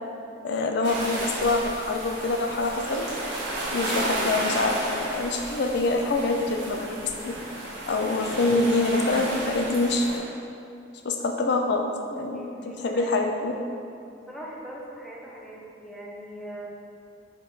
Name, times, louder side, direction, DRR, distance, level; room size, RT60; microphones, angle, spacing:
voice 1, 0.4-3.1 3.7-6.9 7.2-7.3 7.9-10.2 11.0-13.5, left 2 dB, 60° left, 3 dB, 0.4 m, -25 dB
sound 1, 0.8-10.2, right 1 dB, 65° right, 1.5 m, -33 dB
voice 2, 12.3-13.3 14.0-16.7, right 1 dB, ahead, -4 dB, 0.8 m, -41 dB
4.8 x 4.4 x 4.8 m, 2.6 s
head